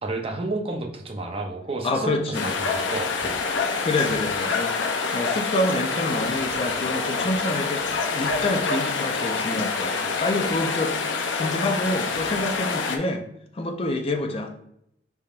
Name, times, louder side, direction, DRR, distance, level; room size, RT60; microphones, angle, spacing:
voice 1, 0.0-3.4, right 2 dB, 30° right, 3 dB, 0.6 m, -31 dB
voice 2, 1.8-2.5 3.8-11.0 11.3-13.2 13.5-14.5, left 2 dB, 30° left, 5 dB, 0.4 m, -27 dB
sound 1, 2.3-13.0, left 4 dB, 85° left, 0.6 m, -26 dB
5.4 x 3.5 x 2.4 m, 0.74 s
head